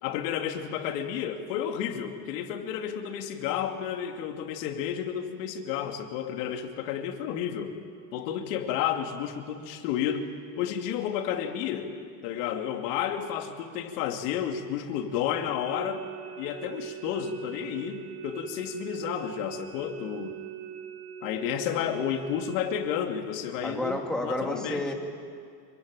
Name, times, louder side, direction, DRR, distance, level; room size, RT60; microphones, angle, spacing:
voice 1, 0.0-7.7 8.1-10.3 10.6-11.9 12.2-16.0 16.4-20.4 21.2-24.8, left 9 dB, 75° left, 5 dB, 2.7 m, -31 dB
sound 1, 15.6-22.9, right 10 dB, 50° right, 1.9 m, -41 dB
voice 2, 23.6-24.9, left 1 dB, ahead, 1 dB, 2.5 m, -30 dB
26.5 x 24.0 x 9.0 m, 2.2 s
cardioid pair, 155°, 49 cm